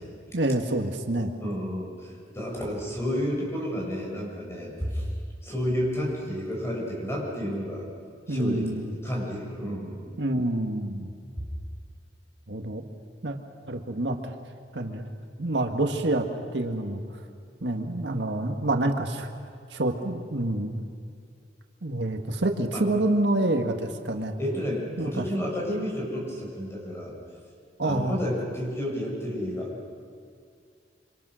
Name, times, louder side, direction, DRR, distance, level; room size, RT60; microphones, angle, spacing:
voice 1, 0.3-1.3 8.3-8.9 10.2-11.1 12.5-12.8 13.2-13.4 13.7-14.3 14.7-15.1 15.4-16.3 16.5-17.0 17.6-19.3 19.7-20.9 21.8-24.3 25.0-25.3 27.8-28.2, right 1 dB, 80° right, 4 dB, 1.7 m, -27 dB
voice 2, 1.4-5.1 5.4-7.9 8.3-10.0 11.4-11.5 22.7-22.8 24.4-27.1 27.8-29.7, equal, 15° left, -3 dB, 6.8 m, -31 dB
26.5 x 26.0 x 6.4 m, 2.3 s
head